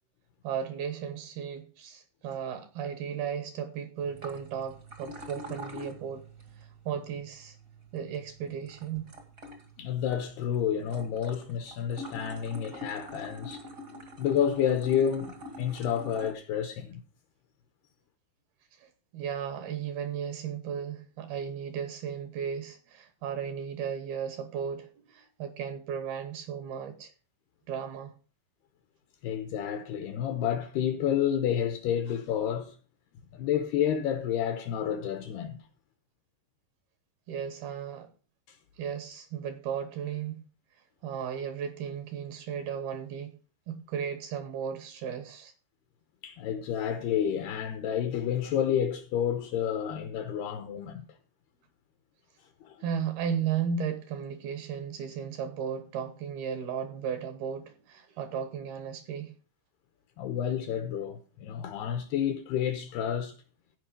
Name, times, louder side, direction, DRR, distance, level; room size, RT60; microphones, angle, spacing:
voice 1, 0.4-6.2 6.5-7.6 7.9-9.1 18.7-27.1 27.7-28.1 37.3-38.1 38.8-40.4 41.0-43.4 43.7-45.5 52.8-59.3, right 7 dB, 70° right, 2.5 m, -35 dB
sound 1, 4.0-16.3, left 1 dB, 50° right, 1.0 m, -46 dB
voice 2, 9.8-13.6 14.2-17.0 29.2-32.7 33.3-35.6 46.2-51.1 52.6-52.8 60.2-63.3, left 9 dB, 75° left, 2.5 m, -30 dB
16.0 x 5.3 x 5.2 m
omnidirectional pair, 5.4 m